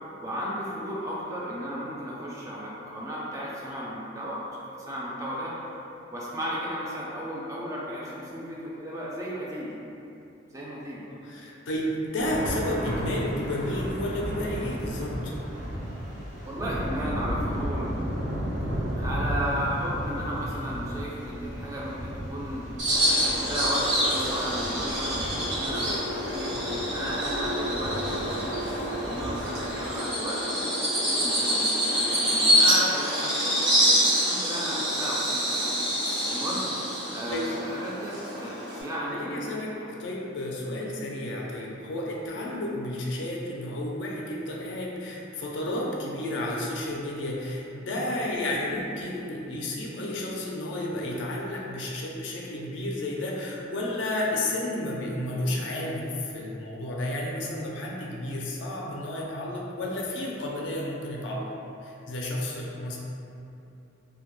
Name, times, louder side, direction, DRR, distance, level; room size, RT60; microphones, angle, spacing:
voice 1, 0.2-5.5 6.1-9.8 10.5-11.0 16.5-17.9 18.9-22.7 23.1-26.5 26.9-30.4 31.0-35.7 36.3-36.6 37.1-38.5 38.8-39.4 39.7-39.9 40.7-40.9, equal, 15° right, -6 dB, 0.3 m, -34 dB
voice 2, 11.1-15.3 37.3-37.5 39.1-61.5 61.8-63.0, left 1 dB, 65° left, -3 dB, 0.4 m, -32 dB
Thunder / Rain, 12.2-29.9, equal, 70° right, 0.6 m, -34 dB
Bird vocalization bird call bird song, 22.8-38.8, equal, 85° right, 1.1 m, -26 dB
2.1 x 2.1 x 2.9 m, 2.7 s
head